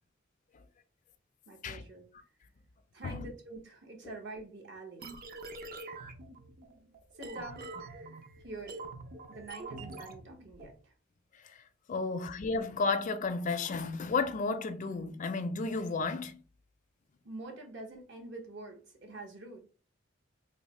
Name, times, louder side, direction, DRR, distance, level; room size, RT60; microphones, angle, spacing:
voice 1, 1.5-2.1 2.9-5.1 7.1-7.8 8.4-8.8 9.3-10.9 17.2-19.6, right 2 dB, 65° right, 1.0 m, -46 dB
sound 1, 5.0-10.7, right 2 dB, 50° right, 0.5 m, -45 dB
voice 2, 11.9-16.4, left 4 dB, 40° left, 0.4 m, -32 dB
3.2 x 2.0 x 4.1 m
head